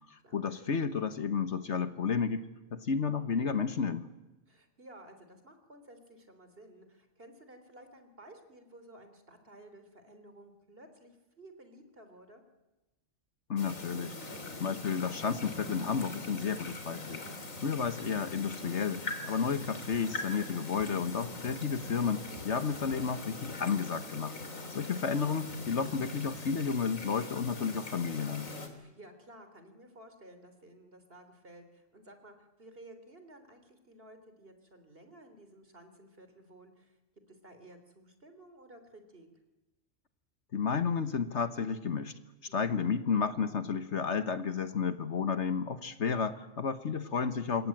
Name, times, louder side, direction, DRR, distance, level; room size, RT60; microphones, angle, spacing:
voice 1, 0.1-4.1 13.5-17.2 17.6-24.3 24.7-28.5 40.5-42.1 42.5-47.7, left 6 dB, 60° left, 11 dB, 1.5 m, -32 dB
voice 2, 4.5-12.4 24.6-25.0 28.7-37.0 37.3-39.3 42.5-42.9, right 1 dB, 45° right, 8 dB, 3.8 m, -54 dB
sound 1, 13.6-28.7, left 2 dB, 80° left, 3.6 m, -42 dB
27.0 x 23.0 x 9.0 m, 1.1 s
omnidirectional pair, 1.4 m